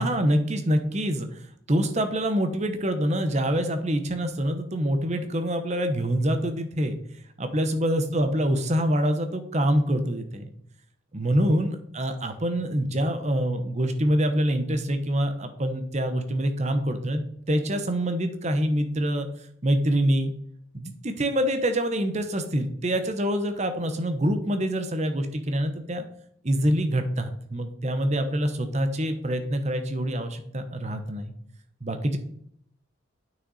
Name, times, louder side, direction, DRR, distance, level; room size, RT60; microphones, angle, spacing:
voice 1, 0.0-7.0 7.4-10.5 11.1-17.2 17.5-19.3 19.6-20.3 20.7-26.0 26.4-31.3 31.8-32.2, equal, 35° right, 8 dB, 1.0 m, -25 dB
8.9 x 6.3 x 4.1 m, 0.68 s
head